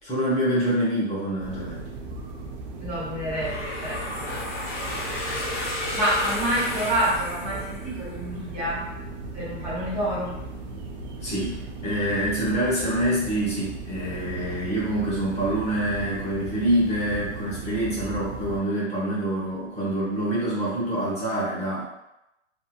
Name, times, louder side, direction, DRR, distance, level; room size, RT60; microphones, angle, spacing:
voice 1, 0.0-1.8 11.2-21.8, right 1 dB, 15° left, -8 dB, 0.8 m, -26 dB
sound 1, 1.4-18.6, right 3 dB, 40° right, 0.4 m, -37 dB
voice 2, 2.8-4.4 5.0-8.8 9.3-10.3, right 1 dB, 20° right, -9 dB, 0.7 m, -28 dB
sound 2, 3.3-8.2, left 1 dB, 50° left, 1.1 m, -32 dB
2.7 x 2.6 x 2.2 m, 0.89 s
hypercardioid pair, 130°, 37 cm